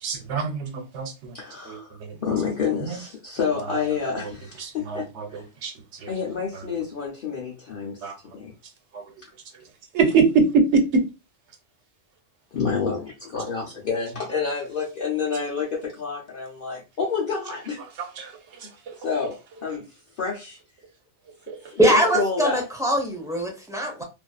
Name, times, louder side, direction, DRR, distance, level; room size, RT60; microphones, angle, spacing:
voice 1, 0.0-1.4 1.7-2.2 2.8-3.0 4.2-4.3 4.6-5.7 6.0-6.1 6.5-6.6 8.0-8.2 8.9-9.0 9.9-10.8 18.0-18.3 18.9-19.0 21.5-21.6, right 4 dB, 80° right, 1.0 m, -24 dB
voice 2, 1.3-5.4 6.1-8.1 8.3-8.5 12.5-17.8 18.6-18.7 19.0-19.9 20.2-20.6 21.7-22.6, left 5 dB, 55° left, 0.7 m, -29 dB
voice 3, 21.8-24.0, right 1 dB, 5° right, 0.4 m, -22 dB
2.5 x 2.4 x 2.3 m
omnidirectional pair, 1.2 m